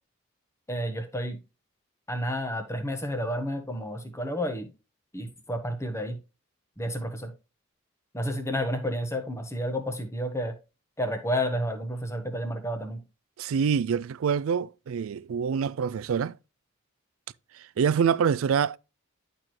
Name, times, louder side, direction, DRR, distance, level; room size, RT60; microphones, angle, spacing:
voice 1, 0.7-1.4 2.1-4.7 5.1-6.2 6.8-7.3 8.1-10.5 11.0-13.0, equal, 15° left, 1.1 m, -31 dB
voice 2, 13.4-16.4 17.5-18.8, right 7 dB, 75° right, 0.3 m, -26 dB
11.0 x 4.5 x 3.2 m
head